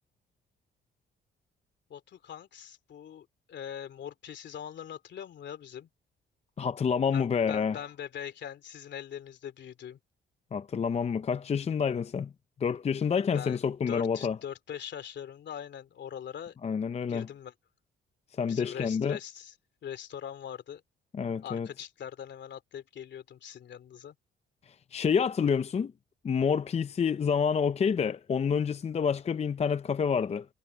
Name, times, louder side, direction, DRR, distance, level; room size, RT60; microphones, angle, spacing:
voice 1, 1.9-5.9 7.1-10.0 13.3-16.6 17.1-17.5 18.5-19.5 19.8-20.8 21.4-24.1, left 9 dB, 65° left, 2.9 m, -42 dB
voice 2, 6.6-7.8 10.5-12.3 12.6-14.4 16.6-17.3 18.4-19.2 21.1-21.7 24.7-25.9 26.2-30.5, left 6 dB, 30° left, 0.5 m, -28 dB
cardioid pair, 90°, 20 cm